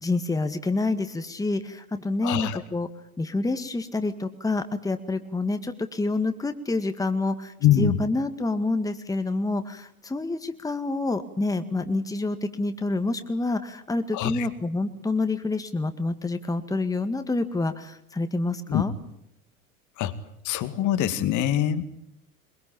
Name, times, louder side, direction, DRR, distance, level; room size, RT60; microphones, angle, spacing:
voice 1, 0.0-2.9 3.2-18.9, left 2 dB, 10° left, 9 dB, 1.9 m, -28 dB
voice 2, 2.2-2.6 7.6-8.0 14.1-14.5 18.7-18.8 20.0-20.1 20.4-21.8, left 10 dB, 40° left, 11 dB, 2.2 m, -23 dB
24.0 x 23.0 x 8.8 m, 0.76 s
figure-of-eight pair, 80°, 44 cm